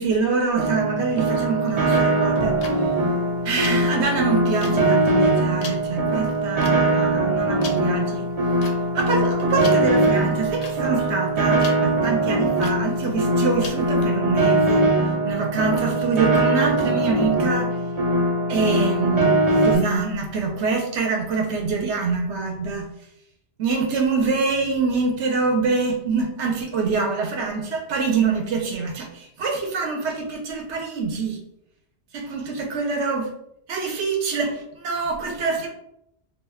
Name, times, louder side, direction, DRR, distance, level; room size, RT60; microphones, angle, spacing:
voice 1, 0.0-2.6 3.4-8.3 8.9-14.9 15.2-17.8 18.5-19.4 19.6-22.9 23.6-31.4 32.1-33.2 33.7-35.7, right 4 dB, 85° right, 2 dB, 1.0 m, -25 dB
Piano, 0.6-19.8, right 2 dB, 45° right, 0.5 m, -21 dB
sound 1, 2.3-14.1, left 4 dB, 65° left, 0.7 m, -40 dB
2.4 x 2.3 x 3.4 m, 0.77 s
omnidirectional pair, 1.1 m